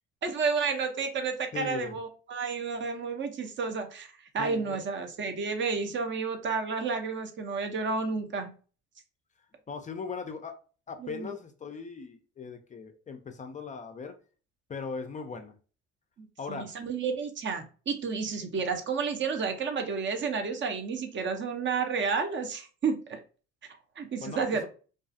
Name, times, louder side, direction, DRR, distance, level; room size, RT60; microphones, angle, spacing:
voice 1, 0.2-4.1 4.3-8.5 11.0-11.3 16.2-23.2 24.0-24.7, right 5 dB, 35° right, 7 dB, 0.6 m, -31 dB
voice 2, 1.5-2.0 4.4-4.8 9.7-10.5 10.9-14.1 14.7-15.5 16.4-16.8 24.2-24.7, left 5 dB, 25° left, 6 dB, 0.4 m, -39 dB
2.4 x 2.3 x 2.5 m, 0.38 s
supercardioid pair, 75°, 33 cm